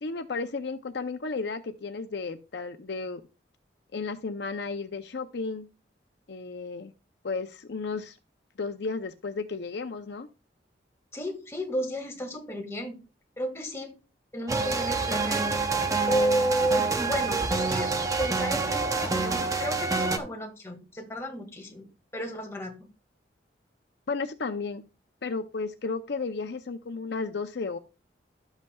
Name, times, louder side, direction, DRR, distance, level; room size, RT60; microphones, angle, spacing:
voice 1, 0.0-3.2 3.9-5.7 6.3-6.9 7.2-8.2 8.6-10.3 24.1-24.8 25.2-27.8, left 4 dB, 65° left, 8 dB, 0.6 m, -33 dB
voice 2, 11.1-13.0 13.4-14.0 14.3-15.6 16.1-17.9 18.2-22.9, equal, 15° left, 2 dB, 1.9 m, -32 dB
sound 1, 14.5-20.2, right 4 dB, 20° right, 0.7 m, -27 dB
12.0 x 8.0 x 2.3 m, 0.30 s
head